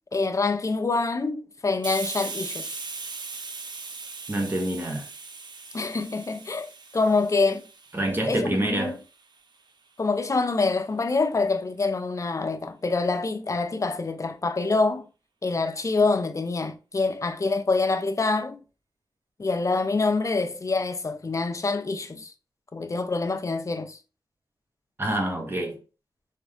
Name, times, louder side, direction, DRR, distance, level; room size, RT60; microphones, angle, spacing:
voice 1, 0.1-2.8 5.7-7.7 8.3-9.0 10.0-15.1 15.4-18.6 19.4-22.3 22.7-24.0, left 3 dB, 40° left, 0.6 m, -26 dB
Hiss, 1.8-9.2, right 4 dB, 60° right, 0.7 m, -39 dB
voice 2, 4.3-5.1 7.9-9.0 25.0-25.8, right 1 dB, 25° right, 1.5 m, -26 dB
3.8 x 3.6 x 3.4 m
wide cardioid pair, 85°, 8 cm